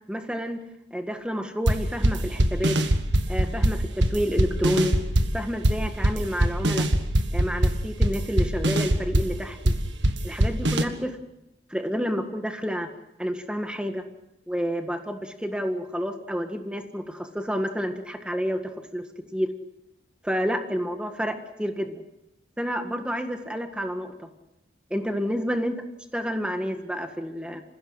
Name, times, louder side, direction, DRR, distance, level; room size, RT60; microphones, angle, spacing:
voice 1, 0.1-0.6 0.9-2.8 3.3-4.9 5.3-6.9 7.3-9.7 10.2-11.2 11.7-12.9 13.2-14.0 14.5-18.6 18.9-19.0 19.3-19.5 20.2-22.0 22.6-24.3 24.9-25.7 26.1-27.6, equal, 5° right, 6 dB, 1.7 m, -29 dB
sound 1, 1.7-10.8, right 1 dB, 85° right, 1.8 m, -22 dB
28.0 x 16.0 x 7.9 m, 0.90 s
head